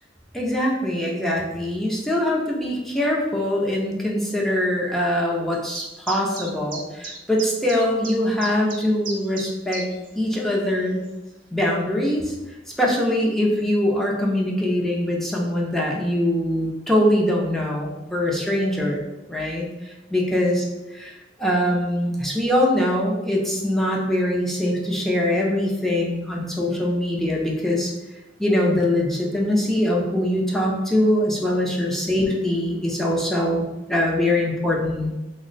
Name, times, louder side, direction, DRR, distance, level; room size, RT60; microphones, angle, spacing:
voice 1, 0.3-9.8 10.2-11.0 11.5-12.3 12.8-20.6 21.0-21.1 21.4-27.9 28.4-33.6 33.9-35.1, left 1 dB, ahead, -3 dB, 0.5 m, -23 dB
sound 1, 5.5-10.1 10.4-10.5 11.1-11.2, right 4 dB, 50° right, 0.7 m, -35 dB
3.5 x 2.1 x 3.9 m, 1.0 s
head